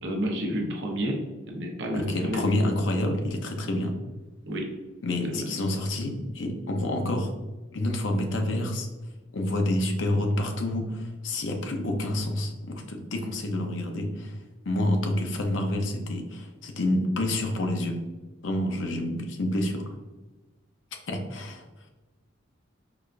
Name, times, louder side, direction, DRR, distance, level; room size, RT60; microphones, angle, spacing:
voice 1, 0.0-2.5 4.5-4.7 5.2-5.5, equal, 65° right, 1 dB, 0.7 m, -30 dB
voice 2, 1.9-4.0 5.0-7.3 7.7-8.9 9.3-14.3 14.7-18.0 18.4-19.8 21.1-21.6, left 1 dB, 70° left, 4 dB, 0.6 m, -28 dB
4.7 x 2.3 x 2.4 m, 1.2 s
head